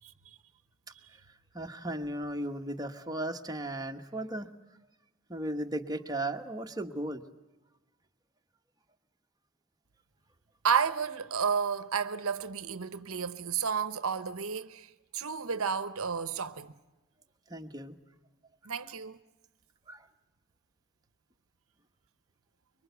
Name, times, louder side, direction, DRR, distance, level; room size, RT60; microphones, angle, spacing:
voice 1, 1.5-4.5 5.3-7.2 17.5-18.0 19.9-20.1, right 1 dB, 15° right, 1.3 m, -36 dB
voice 2, 10.6-14.9 15.1-16.7 18.7-19.2, right 6 dB, 70° right, 0.9 m, -31 dB
25.0 x 23.5 x 8.2 m
head